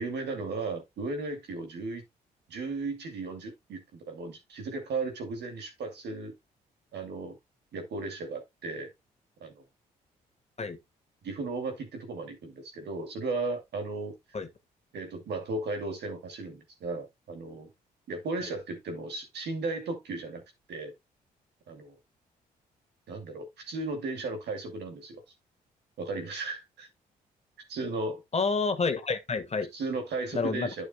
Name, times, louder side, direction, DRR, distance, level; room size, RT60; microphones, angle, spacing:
voice 1, 0.0-2.0 2.5-6.3 6.9-7.4 7.7-8.9 9.4-9.6 11.2-14.1 14.9-17.7 18.1-20.4 20.7-20.9 21.7-22.0 23.1-25.2 26.0-26.9 27.7-28.2 29.7-30.9, right 3 dB, 70° right, 2.7 m, -35 dB
voice 2, 28.3-29.7 30.3-30.7, left 4 dB, 35° left, 1.5 m, -28 dB
11.0 x 6.4 x 2.2 m
hypercardioid pair, 50°, 18 cm